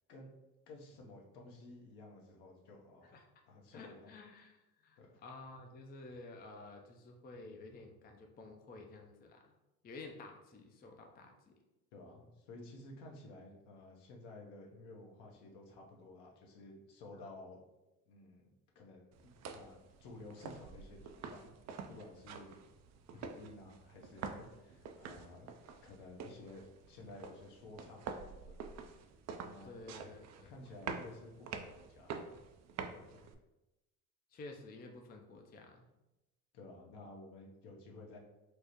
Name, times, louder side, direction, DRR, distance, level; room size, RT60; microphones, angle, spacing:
voice 1, 0.7-3.2 3.5-4.1 5.0-5.2 11.9-17.6 18.1-18.4 18.7-21.5 21.9-22.6 23.2-25.5 25.8-28.6 29.4-29.7 30.4-32.4 33.0-33.3 36.5-38.2, left 2 dB, 65° left, 0 dB, 0.9 m, -53 dB
voice 2, 3.7-9.5 9.8-11.5 17.1-17.3 23.1-23.2 29.6-30.5 34.3-35.8, left 3 dB, 20° left, 3 dB, 0.5 m, -52 dB
sound 1, 19.1-33.3, right 5 dB, 40° right, 0.4 m, -48 dB
4.6 x 2.1 x 2.9 m, 1.0 s
hypercardioid pair, 60°, 44 cm